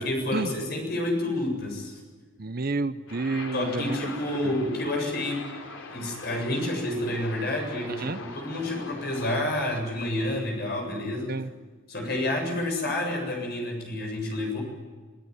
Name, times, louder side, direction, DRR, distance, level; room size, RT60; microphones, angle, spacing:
voice 1, 0.0-2.0 3.5-5.5 5.9-11.4 11.9-14.6, left 1 dB, 50° left, 2 dB, 7.7 m, -29 dB
voice 2, 2.4-4.0 8.0-8.2 11.3-11.5, right 3 dB, 45° right, 14 dB, 0.8 m, -29 dB
sound 1, 3.1-9.8, left 3 dB, 75° left, 3.4 m, -42 dB
26.5 x 17.0 x 9.7 m, 1.4 s
head